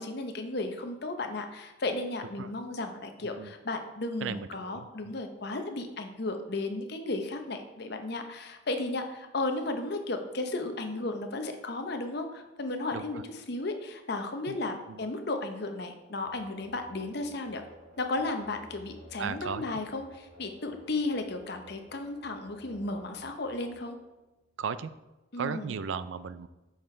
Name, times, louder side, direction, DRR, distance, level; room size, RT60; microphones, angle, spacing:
voice 1, 0.0-17.6 18.0-24.0 25.3-25.7, left 2 dB, 55° left, 5 dB, 0.8 m, -34 dB
voice 2, 4.2-4.9 12.9-13.2 14.5-14.6 14.9-15.0 19.2-19.8 24.6-24.9 25.4-26.5, right 6 dB, 70° right, 14 dB, 0.4 m, -36 dB
sound 1, 16.2-24.9, equal, 45° right, 1.7 m, -55 dB
8.4 x 5.8 x 3.3 m, 1.0 s
head